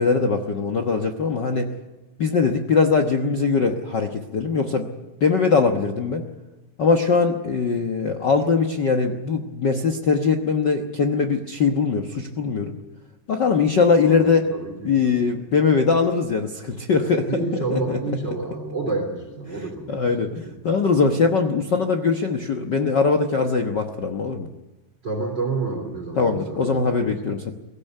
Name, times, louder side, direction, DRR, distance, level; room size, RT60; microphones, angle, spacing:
voice 1, 0.0-1.7 2.2-4.9 5.2-6.3 6.8-12.8 13.3-14.5 14.8-18.0 19.9-24.5 26.2-27.5, left 5 dB, 90° left, 5 dB, 0.9 m, -21 dB
voice 2, 14.0-15.4 17.3-20.0 20.3-20.5 25.0-27.3, right 3 dB, 30° right, 2 dB, 3.9 m, -29 dB
23.5 x 16.0 x 9.2 m, 1.2 s
omnidirectional pair, 4.0 m